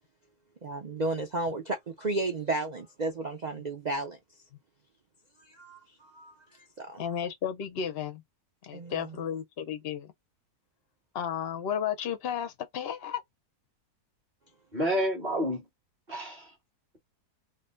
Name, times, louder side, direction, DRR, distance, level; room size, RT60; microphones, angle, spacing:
voice 1, 0.6-4.2 5.4-6.4 6.8-7.0 8.7-9.2, right 2 dB, 60° right, 0.4 m, -33 dB
voice 2, 7.0-8.2 8.7-10.1 11.1-13.2, left 8 dB, 55° left, 0.7 m, -33 dB
voice 3, 14.7-15.6 16.1-16.5, equal, 30° right, 1.6 m, -29 dB
3.8 x 2.1 x 3.8 m
omnidirectional pair, 1.7 m